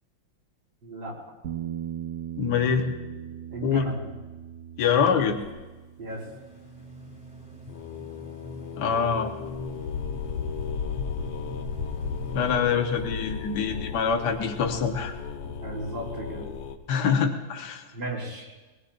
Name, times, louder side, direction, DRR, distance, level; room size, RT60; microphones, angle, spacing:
voice 1, 0.8-1.2 3.5-4.1 6.0-6.3 15.4-16.5 17.9-18.5, right 1 dB, 85° right, -5 dB, 4.9 m, -35 dB
Bass guitar, 1.4-7.7, right 10 dB, 65° right, 1.2 m, -39 dB
voice 2, 2.4-2.9 3.6-3.8 4.8-5.4 8.8-9.3 12.3-15.1 16.9-17.8, left 6 dB, 65° left, 4 dB, 1.7 m, -25 dB
sound 1, 4.8-5.5 7.7-16.8, left 6 dB, 80° left, 1.7 m, -35 dB
sound 2, 6.1-12.6, equal, 5° right, 1.5 m, -43 dB
21.5 x 19.0 x 2.6 m, 1.2 s
omnidirectional pair, 2.1 m